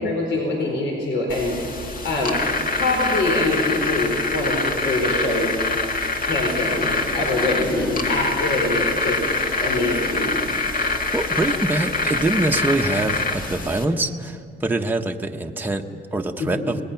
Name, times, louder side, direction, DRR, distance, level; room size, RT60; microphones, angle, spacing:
voice 1, 0.0-1.6 2.0-2.4 2.7-5.5 6.1-9.2 9.6-10.3 16.4-16.7, left 2 dB, 75° left, -1 dB, 4.6 m, -24 dB
sound 1, 1.3-13.9, left 3 dB, 45° left, 1.9 m, -25 dB
voice 2, 10.7-16.8, right 2 dB, 10° right, 3 dB, 0.9 m, -24 dB
27.0 x 19.5 x 5.8 m, 2.3 s
cardioid pair, 135°, 20 cm